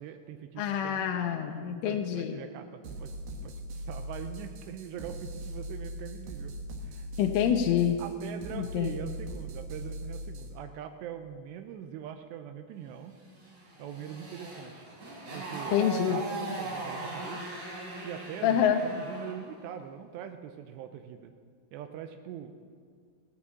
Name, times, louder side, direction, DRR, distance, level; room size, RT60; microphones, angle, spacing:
voice 1, 0.0-1.3 1.9-3.1 3.4-6.5 6.8-7.1 8.0-13.2 13.8-14.9 15.3-17.4 18.0-21.3 21.7-22.5, right 9 dB, 90° right, 8 dB, 2.5 m, -42 dB
voice 2, 0.6-2.4 7.2-8.0 8.5-8.9 15.7-16.2 18.4-18.8, left 9 dB, 85° left, 2 dB, 3.2 m, -27 dB
sound 1, 2.8-10.5, equal, 70° right, 1.9 m, -40 dB
Motorcycle, 13.4-19.4, right 2 dB, 40° right, 4.2 m, -39 dB
16.0 x 8.8 x 8.5 m, 2.1 s
omnidirectional pair, 5.6 m